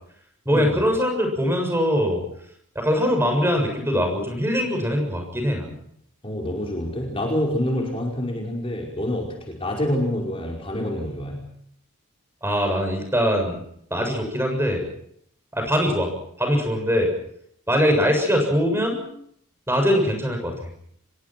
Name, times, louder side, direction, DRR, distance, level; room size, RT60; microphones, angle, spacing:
voice 1, 0.5-2.2 2.8-5.8 12.4-13.6 13.9-14.9 15.5-16.1 16.4-17.1 17.7-19.0 19.7-20.5, equal, 10° right, 4 dB, 6.9 m, -22 dB
voice 2, 6.2-11.5, left 1 dB, 25° left, -1 dB, 5.2 m, -27 dB
27.0 x 22.5 x 6.1 m, 0.70 s
head